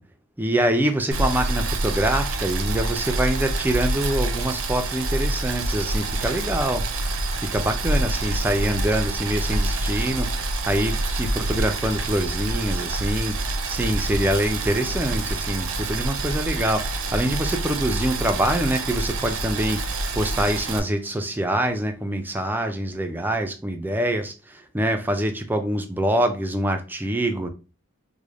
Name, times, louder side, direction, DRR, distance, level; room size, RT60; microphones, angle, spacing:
voice 1, 0.4-7.1 7.4-27.5, right 1 dB, 10° right, 0.4 m, -25 dB
Boiling, 1.1-20.8, right 2 dB, 75° right, 0.6 m, -27 dB
3.3 x 2.1 x 3.5 m
head